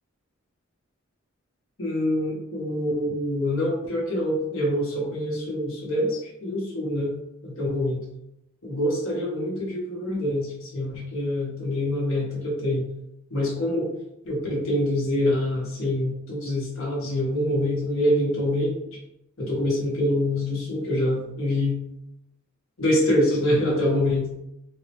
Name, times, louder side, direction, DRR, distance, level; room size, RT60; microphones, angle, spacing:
voice 1, 1.8-7.1 7.4-8.0 8.6-12.9 13.3-13.9 14.2-18.7 19.4-21.8 22.8-24.3, left 1 dB, 75° left, -3 dB, 0.9 m, -25 dB
3.4 x 2.1 x 2.8 m, 0.81 s
head